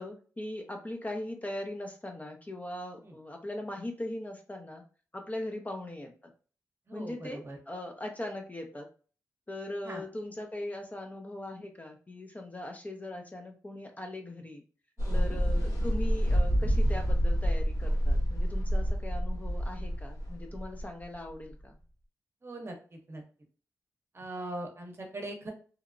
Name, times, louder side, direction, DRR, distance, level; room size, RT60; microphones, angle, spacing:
voice 1, 0.0-4.8 5.1-6.3 6.9-8.9 9.5-14.6 15.1-21.8, left 1 dB, 25° left, 3 dB, 0.5 m, -40 dB
voice 2, 6.9-7.6 9.8-10.0 15.0-15.4 22.4-23.2 24.1-25.5, right 1 dB, 40° right, 2 dB, 0.8 m, -41 dB
sound 1, 15.0-21.6, equal, 70° left, 0.9 m, -28 dB
2.8 x 2.1 x 2.5 m, 0.39 s
cardioid pair, 65°, 7 cm